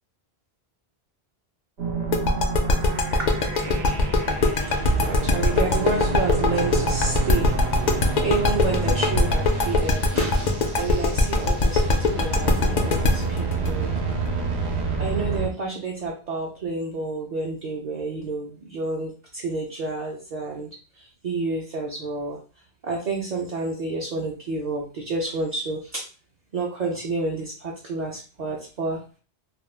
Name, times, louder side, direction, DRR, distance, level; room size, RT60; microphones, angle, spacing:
sound 1, 1.8-15.5, right 3 dB, 90° right, 0.9 m, -29 dB
sound 2, 2.1-14.9, left 3 dB, 55° left, 0.5 m, -21 dB
voice 1, 3.2-13.9 15.0-22.4 22.8-26.0 26.5-29.0, right 3 dB, 50° right, -1 dB, 0.5 m, -30 dB
2.4 x 2.1 x 3.2 m, 0.37 s
omnidirectional pair, 1.1 m